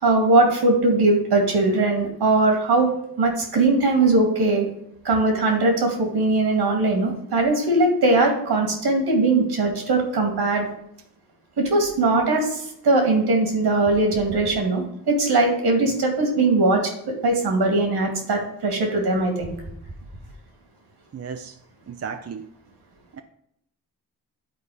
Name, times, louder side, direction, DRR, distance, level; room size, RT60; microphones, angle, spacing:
voice 1, 0.0-2.9 3.2-4.7 5.0-10.7 11.6-16.8 17.2-19.5, right 2 dB, 70° right, 2.2 m, -20 dB
voice 2, 21.1-21.5 21.9-22.5 23.1-23.2, right 6 dB, 35° right, 0.6 m, -35 dB
10.0 x 4.0 x 4.9 m
supercardioid pair, 40°, 41 cm